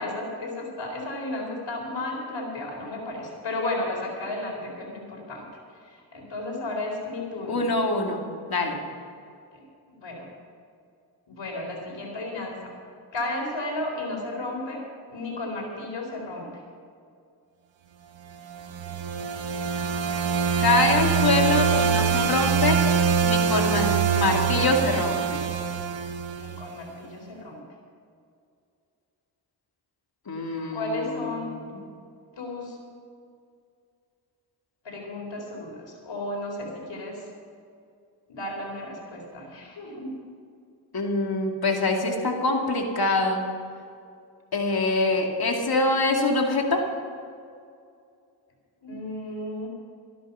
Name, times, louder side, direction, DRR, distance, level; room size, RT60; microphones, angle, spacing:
voice 1, 0.0-5.5 5.8-7.7 9.5-9.6 10.0-10.3 11.3-12.7 13.1-14.8 15.1-16.5 26.3-27.6 30.7-31.5 32.4-32.8 34.8-37.2 38.3-40.1 48.8-49.7, left 2 dB, 75° left, 0 dB, 4.4 m, -33 dB
voice 2, 7.5-8.2 8.5-8.8 20.6-22.8 23.2-25.4 30.3-31.5 31.7-31.8 40.9-43.4 44.5-46.8, left 3 dB, 55° left, 1 dB, 2.5 m, -24 dB
sound 1, 18.5-26.7, right 6 dB, 90° right, 1.1 m, -24 dB
14.5 x 12.0 x 5.6 m, 2.4 s
cardioid pair, 65°, 44 cm